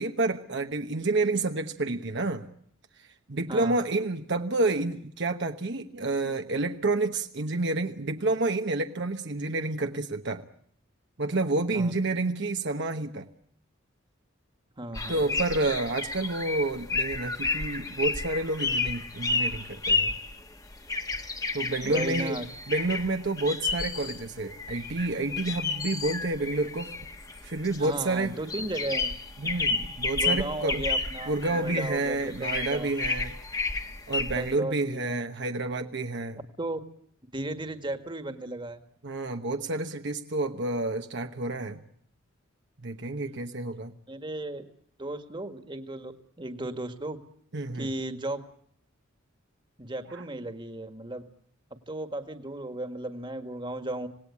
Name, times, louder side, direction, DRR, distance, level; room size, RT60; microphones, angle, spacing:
voice 1, 0.0-2.5 3.3-10.4 11.2-13.2 15.1-20.1 21.5-22.4 22.7-26.9 27.4-28.4 29.4-30.8 31.3-33.3 34.1-36.4 39.0-41.8 42.8-43.9 47.5-47.9 50.1-50.2, right 2 dB, 60° right, 5 dB, 1.1 m, -29 dB
voice 2, 14.8-15.4 21.8-22.5 27.8-29.1 30.1-32.9 34.4-35.2 36.6-36.8 37.3-38.8 43.2-43.5 44.1-44.6 45.0-47.2 47.7-48.4 49.8-51.2 51.9-54.1, right 1 dB, 25° right, 8 dB, 1.8 m, -35 dB
sound 1, 14.9-34.5, left 3 dB, 15° left, 1.3 m, -31 dB
26.5 x 18.5 x 8.5 m, 0.67 s
head